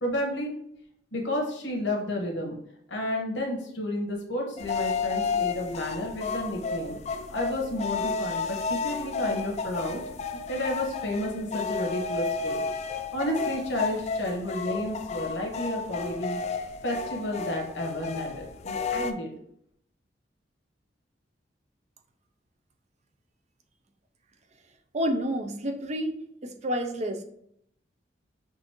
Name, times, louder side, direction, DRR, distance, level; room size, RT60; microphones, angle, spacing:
voice 1, 0.0-0.5 1.1-2.6 2.9-7.0 7.3-10.0 10.5-12.6 12.9-16.4 16.8-19.3, left 1 dB, 90° left, 0 dB, 1.2 m, -31 dB
sound 1, 4.6-19.1, left 4 dB, 40° left, 0.3 m, -32 dB
voice 2, 24.9-26.2 26.4-27.2, equal, 40° right, 5 dB, 0.5 m, -29 dB
6.1 x 2.6 x 2.9 m, 0.71 s
head